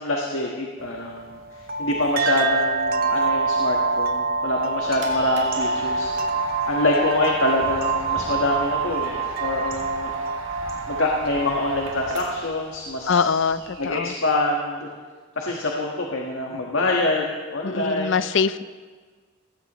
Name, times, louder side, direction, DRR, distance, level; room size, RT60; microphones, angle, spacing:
voice 1, 0.0-1.4 1.8-10.1 10.9-13.5 13.8-14.9 15.3-18.2, left 2 dB, 85° left, -1 dB, 1.5 m, -25 dB
sound 1, 0.8-12.4, right 4 dB, 50° right, 0.9 m, -26 dB
sound 2, 4.5-12.6, right 3 dB, 65° right, 2.2 m, -39 dB
sound 3, 5.1-14.0, right 2 dB, 30° right, 2.7 m, -43 dB
voice 2, 13.1-14.1 17.6-18.6, left 5 dB, 65° left, 14 dB, 0.5 m, -23 dB
19.0 x 16.0 x 3.1 m, 1.5 s
head